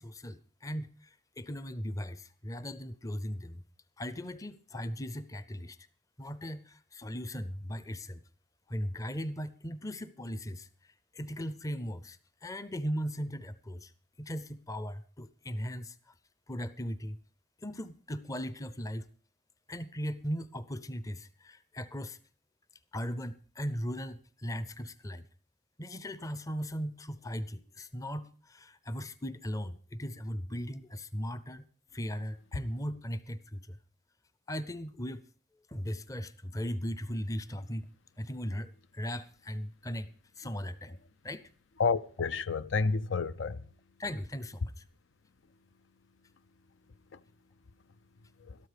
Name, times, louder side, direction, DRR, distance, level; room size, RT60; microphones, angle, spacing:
voice 1, 0.0-3.6 4.0-5.8 6.2-8.2 8.7-13.9 14.2-16.1 16.5-17.2 17.6-19.1 19.7-22.2 22.9-25.3 25.8-31.6 31.9-33.8 34.5-35.3 35.7-37.9 38.2-40.1 40.4-41.0 41.2-41.5 44.0-44.8, equal, 20° left, 0.6 m, -38 dB
voice 2, 41.8-43.6 47.1-47.2 48.5-48.6, left 4 dB, 85° left, 0.6 m, -30 dB
13.0 x 13.0 x 5.0 m
head